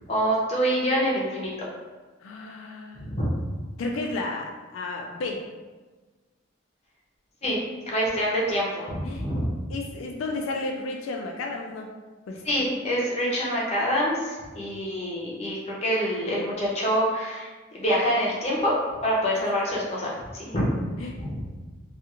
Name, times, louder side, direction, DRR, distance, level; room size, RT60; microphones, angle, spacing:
voice 1, 0.1-1.5 3.0-3.3 7.4-7.6 7.9-9.5 12.4-17.5 17.7-18.7 19.0-20.7 21.2-21.4, equal, 35° left, -4 dB, 0.6 m, -26 dB
voice 2, 2.2-3.2 3.8-5.4 9.0-9.3 9.7-11.9 12.3-12.7 19.4-19.5 21.0-21.2, left 2 dB, 85° left, 1 dB, 0.3 m, -33 dB
2.4 x 2.4 x 2.8 m, 1.3 s
head